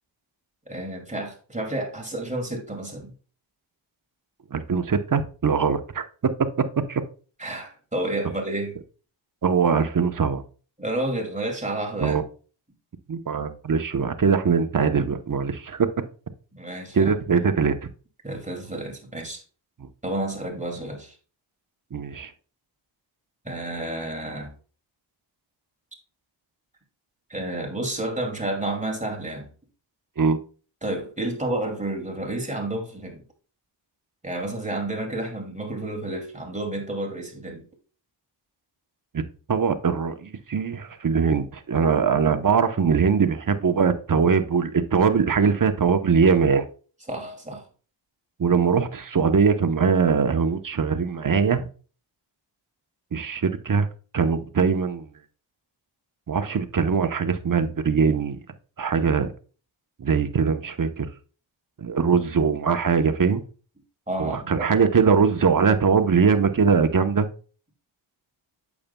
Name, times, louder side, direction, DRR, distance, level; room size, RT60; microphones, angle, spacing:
voice 1, 0.7-3.1 7.4-8.8 10.8-12.2 16.5-17.1 18.2-19.4 20.0-21.2 23.4-24.5 27.3-29.5 30.8-33.2 34.2-37.6 47.1-47.6 64.1-64.7, right 1 dB, 15° right, 2.5 m, -30 dB
voice 2, 4.5-6.0 6.4-7.0 9.4-10.4 12.0-12.2 13.1-15.9 16.9-17.9 21.9-22.3 30.2-30.4 39.1-39.2 39.5-46.6 48.4-51.7 53.1-53.9 54.1-55.1 56.3-58.4 58.8-59.3 60.0-61.1 61.8-63.4 64.2-67.3, right 6 dB, 40° right, 0.9 m, -21 dB
8.5 x 7.2 x 2.3 m
cardioid pair, 45°, 49 cm